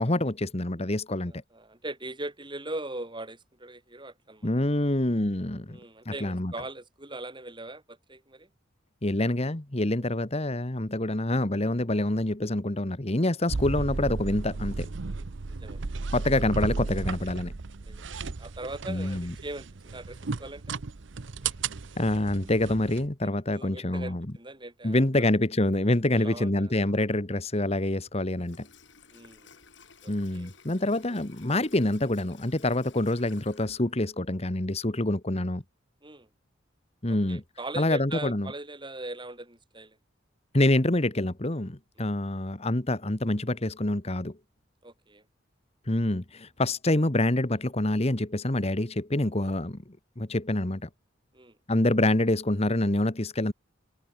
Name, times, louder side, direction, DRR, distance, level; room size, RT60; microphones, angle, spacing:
voice 1, 0.0-1.3 4.4-5.8 6.0-6.5 9.0-14.9 16.1-17.5 18.9-19.3 22.0-24.3 24.8-28.7 30.1-35.6 37.0-37.4 37.8-38.5 40.5-44.4 45.9-49.8 50.2-50.9 51.7-53.5, left 1 dB, 30° left, 1.5 m, -26 dB
voice 2, 1.2-4.5 5.7-8.5 10.0-10.1 15.0-15.8 17.8-20.8 23.2-25.1 26.1-27.0 29.1-29.6 30.0-30.5 31.1-31.2 36.0-36.3 37.1-40.0 42.0-42.1 44.8-45.2 51.3-51.6, right 2 dB, 25° right, 6.1 m, -41 dB
sound 1, 13.5-23.1, right 4 dB, 65° right, 0.8 m, -34 dB
Water tap faucet / Sink (filling or washing), 28.1-34.4, left 5 dB, 65° left, 6.7 m, -55 dB
head